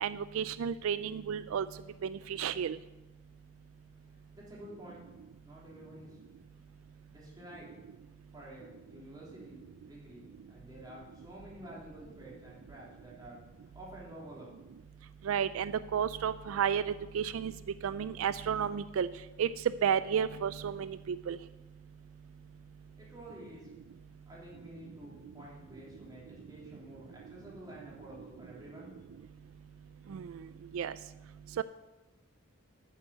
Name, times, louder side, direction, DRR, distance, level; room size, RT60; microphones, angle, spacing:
voice 1, 0.0-1.7 2.0-2.8 15.2-17.5 17.8-19.1 19.4-19.5 19.8-21.4 30.1-30.3 30.7-30.9 31.6-31.7, right 8 dB, 85° right, 14 dB, 0.3 m, -32 dB
voice 2, 4.1-5.0 5.4-6.2 7.1-7.7 8.3-13.4 13.7-14.5 23.0-23.7 24.2-28.9, right 1 dB, 20° right, -5 dB, 3.3 m, -50 dB
9.2 x 8.3 x 6.6 m, 1.1 s
head